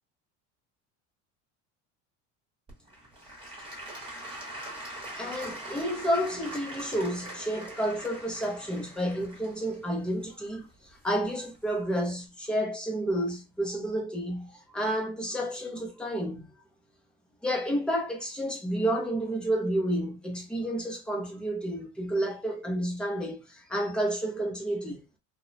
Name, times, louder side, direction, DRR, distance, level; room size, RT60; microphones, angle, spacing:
Applause / Crowd, 2.7-11.6 12.2-12.3, right 1 dB, 15° right, 0.8 m, -42 dB
voice 1, 5.2-16.5 17.4-25.0, right 1 dB, 5° left, 0.3 m, -30 dB
2.9 x 2.0 x 2.6 m
cardioid pair, 170°, 35 cm